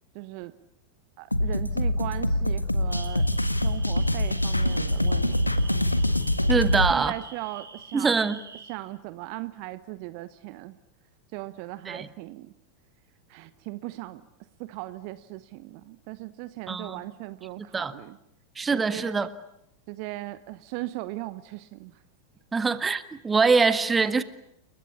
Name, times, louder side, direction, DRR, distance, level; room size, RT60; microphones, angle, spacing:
voice 1, 0.1-0.5 1.2-5.3 6.7-8.2 8.7-10.7 11.3-12.5 13.3-14.2 14.6-18.2 18.7-19.2 19.9-22.0, right 18 dB, 45° right, 1.0 m, -38 dB
sound 1, 1.3-6.9, left 1 dB, 85° left, 1.6 m, -24 dB
sound 2, 2.9-8.7, right 5 dB, 75° right, 6.0 m, -46 dB
voice 2, 6.5-7.1 7.9-8.4 11.9-12.1 16.7-17.0 17.7-17.9 18.6-19.3 22.5-24.2, right 4 dB, 15° right, 1.7 m, -23 dB
29.5 x 22.5 x 8.7 m
figure-of-eight pair, 90°, 0 cm